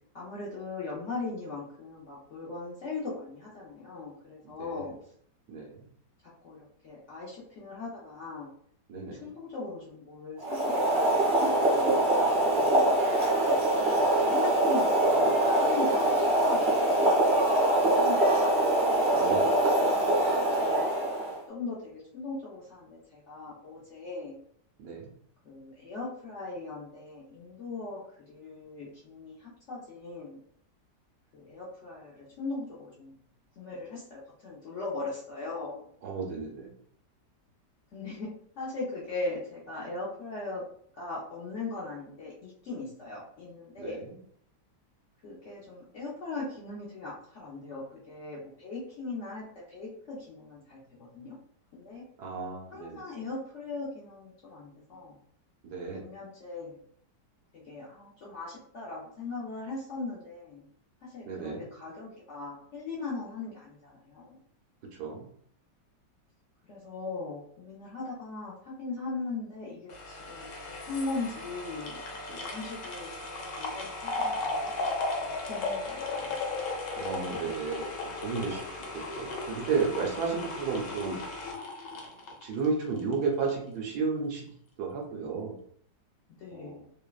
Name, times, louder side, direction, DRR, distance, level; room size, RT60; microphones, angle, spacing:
voice 1, 0.1-4.9 6.4-6.6 6.8-8.5 9.2-12.8 13.4-18.8 19.8-20.8 21.2-24.4 25.4-28.0 28.3-30.4 31.3-33.1 33.6-35.9 37.9-38.3 38.6-40.6 41.0-44.0 45.2-51.4 51.7-52.0 52.7-55.2 55.9-56.8 57.5-60.6 61.0-64.4 66.7-75.0 75.2-76.4 86.4-86.8, left 3 dB, 65° left, -6 dB, 0.7 m, -39 dB
voice 2, 5.5-5.8 8.9-9.3 19.1-19.5 24.8-25.1 36.0-36.7 43.8-44.1 52.2-53.1 55.6-56.0 61.3-61.6 65.0-65.3 77.0-81.2 82.4-84.5 84.8-85.5 86.5-86.8, right 5 dB, 70° right, 0 dB, 1.1 m, -33 dB
Boiling, 10.4-21.4, right 1 dB, 50° right, 0.7 m, -24 dB
sound 1, 69.9-83.1 83.5-83.6, left 3 dB, 85° left, 1.3 m, -36 dB
3.1 x 2.1 x 2.3 m, 0.62 s
omnidirectional pair, 1.9 m